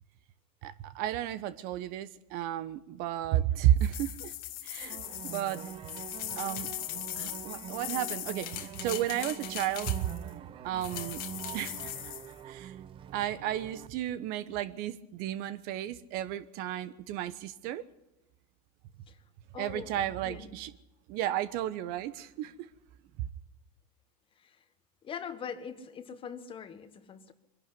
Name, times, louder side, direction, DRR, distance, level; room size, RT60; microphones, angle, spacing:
voice 1, 0.6-4.3 4.6-5.0 5.2-5.6 6.3-6.7 7.2-10.1 10.6-11.2 11.5-11.9 12.4-12.7 13.1-17.9 19.6-20.7 21.1-22.5, right 12 dB, 45° right, 14 dB, 1.1 m, -32 dB
sound 1, 3.8-10.3 10.8-12.3, left 14 dB, 45° left, 1.8 m, -40 dB
sound 2, 4.8-13.9, right 10 dB, 25° right, 0.7 m, -45 dB
voice 2, 19.5-20.5 24.4-24.6 25.0-27.3, left 7 dB, 25° left, 10 dB, 1.5 m, -42 dB
23.0 x 11.5 x 9.8 m, 0.92 s
supercardioid pair, 130°, 21 cm